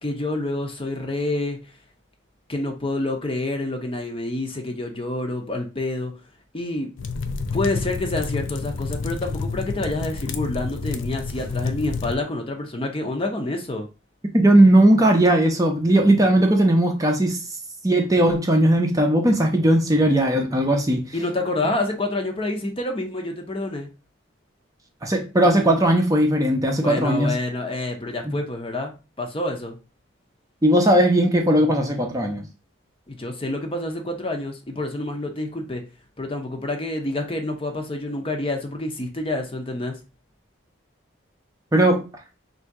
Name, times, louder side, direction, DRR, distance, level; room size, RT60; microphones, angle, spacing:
voice 1, 0.0-1.6 2.5-6.1 6.5-6.9 7.5-13.9 21.1-23.9 26.8-28.9 29.2-29.8 33.1-35.8 36.2-40.0, left 2 dB, 25° left, 0.6 m, -28 dB
sound 1, 7.0-12.2, left 4 dB, 70° left, 0.4 m, -29 dB
voice 2, 14.3-17.4 17.8-21.0 25.0-27.3 28.3-28.4 30.6-32.4 41.7-42.0, right 1 dB, 15° right, 0.5 m, -18 dB
3.4 x 2.6 x 4.6 m
head